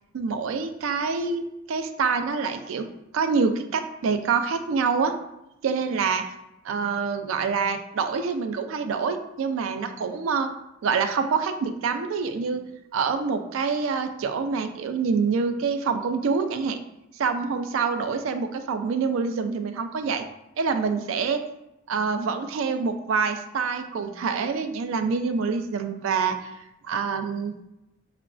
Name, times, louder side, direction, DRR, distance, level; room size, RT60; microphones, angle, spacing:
voice 1, 0.1-2.9 3.1-5.1 5.6-6.2 6.6-10.5 10.8-12.6 12.9-16.8 17.2-20.2 20.6-21.4 21.9-26.5 26.8-27.5, right 5 dB, 85° right, 8 dB, 0.4 m, -26 dB
5.7 x 2.2 x 2.4 m, 0.89 s
head